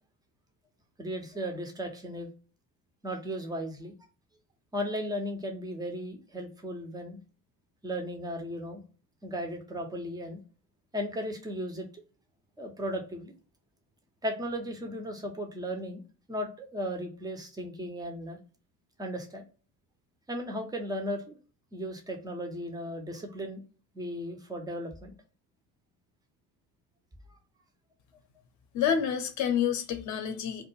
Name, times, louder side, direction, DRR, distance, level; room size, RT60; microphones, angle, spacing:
voice 1, 1.0-2.3 3.0-3.9 4.7-7.2 7.8-8.8 9.2-10.4 10.9-11.9 12.6-13.3 14.2-16.0 16.3-18.4 19.0-19.4 20.3-21.4 21.7-23.6 23.9-25.1, equal, 10° right, 0.4 m, -36 dB
voice 2, 28.7-30.6, left 8 dB, 40° left, 0.6 m, -28 dB
2.2 x 2.2 x 3.0 m
figure-of-eight pair, 60°, 48 cm